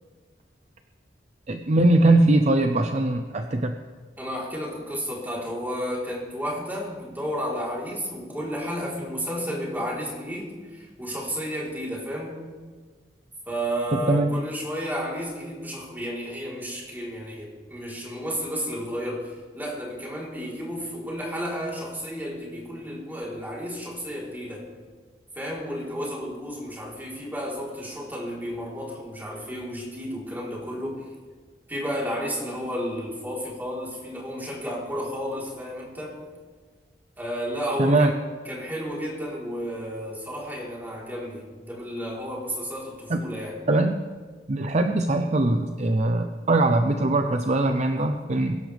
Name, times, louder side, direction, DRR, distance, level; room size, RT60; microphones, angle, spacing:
voice 1, 1.5-3.8 13.9-14.3 37.8-38.1 43.1-43.2 43.7-44.0 44.5-48.6, right 2 dB, 40° right, 6 dB, 0.7 m, -21 dB
voice 2, 4.2-12.5 13.5-24.7 25.3-31.1 31.7-36.2 37.2-43.6, equal, 10° right, -4 dB, 3.9 m, -32 dB
22.5 x 11.5 x 3.5 m, 1.4 s
head